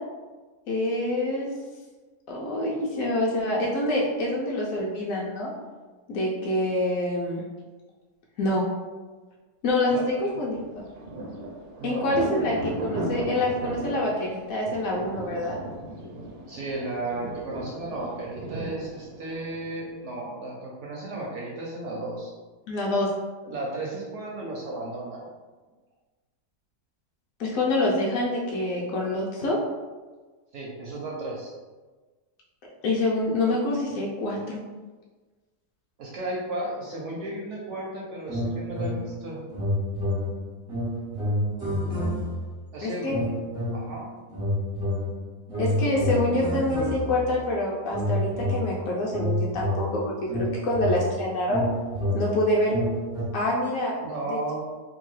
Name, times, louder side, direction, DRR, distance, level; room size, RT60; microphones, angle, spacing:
voice 1, 0.7-1.5 2.3-5.5 6.1-7.4 8.4-8.6 9.6-10.8 11.8-15.6 22.7-23.1 27.4-29.6 32.8-34.6 42.8-43.2 45.6-51.6 52.1-52.7 53.3-53.9 54.3-54.5, left 1 dB, 70° left, -4 dB, 0.9 m, -26 dB
Thunder, 10.5-20.0, right 2 dB, 90° right, 1.2 m, -36 dB
voice 2, 11.8-12.2 16.5-22.3 23.4-25.3 30.5-31.5 36.0-39.4 42.7-43.3 43.7-44.1 54.0-54.5, right 2 dB, 70° right, -3 dB, 0.7 m, -34 dB
sound 1, 38.3-39.2 39.5-42.6 43.1-44.0 44.3-47.4 47.9-53.2, left 1 dB, 35° right, 0.5 m, -29 dB
2.9 x 2.3 x 3.1 m, 1.3 s
omnidirectional pair, 1.7 m